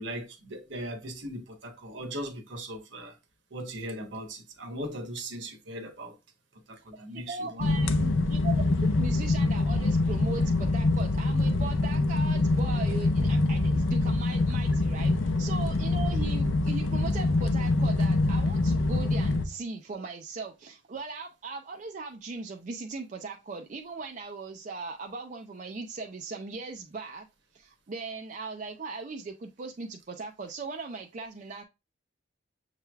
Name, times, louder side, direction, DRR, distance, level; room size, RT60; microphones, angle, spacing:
voice 1, 0.0-3.2 3.5-6.1 6.7-7.7, right 1 dB, 65° right, 1.0 m, -38 dB
voice 2, 6.9-27.3 27.5-31.6, right 4 dB, 40° right, 0.4 m, -39 dB
sound 1, 7.6-19.4, left 2 dB, 85° left, 0.6 m, -25 dB
6.6 x 3.2 x 2.3 m
head